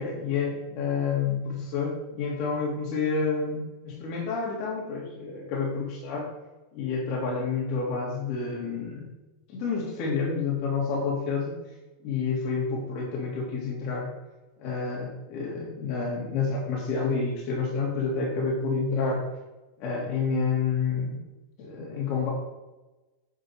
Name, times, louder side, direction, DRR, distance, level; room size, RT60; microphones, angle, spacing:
voice 1, 0.0-6.3 6.7-9.1 9.5-11.6 12.0-14.1 14.6-19.3 19.8-21.2 21.6-22.3, left 5 dB, 55° left, -2 dB, 3.5 m, -29 dB
9.5 x 7.4 x 5.0 m, 1.1 s
supercardioid pair, 120°, 0 cm